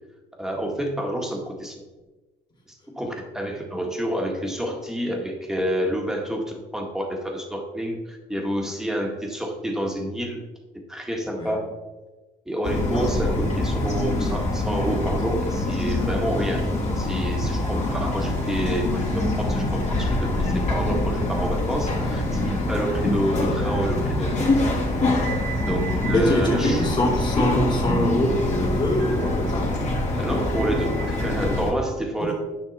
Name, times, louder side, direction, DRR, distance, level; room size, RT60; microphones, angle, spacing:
voice 1, 0.4-1.8 2.7-10.4 10.9-11.7 12.5-24.3 25.6-26.8 30.2-32.3, right 1 dB, 5° right, 0 dB, 2.0 m, -28 dB
Bird vocalization bird call bird song, 12.6-31.7, left 2 dB, 45° left, 3.1 m, -24 dB
voice 2, 26.1-29.8 32.2-32.3, equal, 25° left, -3 dB, 3.2 m, -24 dB
10.0 x 5.9 x 4.3 m, 1.2 s
cardioid pair, 110°, 17 cm